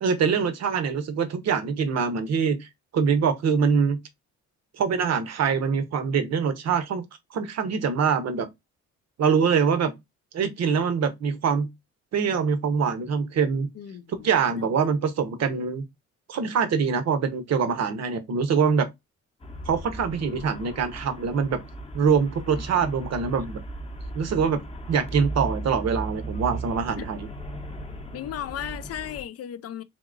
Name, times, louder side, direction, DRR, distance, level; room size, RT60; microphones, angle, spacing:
voice 1, 0.0-2.7 2.9-4.0 4.8-7.0 7.3-8.5 9.2-10.0 10.3-11.7 12.1-13.7 14.1-15.8 16.3-18.9 19.7-21.6 21.9-23.6 24.1-27.3, right 6 dB, 60° right, 0.8 m, -24 dB
voice 2, 13.8-14.9 27.0-27.1 28.1-29.8, left 11 dB, 55° left, 0.5 m, -36 dB
Traffic noise roadway noise, 19.4-29.2, right 2 dB, 20° left, 0.7 m, -37 dB
3.7 x 2.8 x 2.5 m
cardioid pair, 90°, 30 cm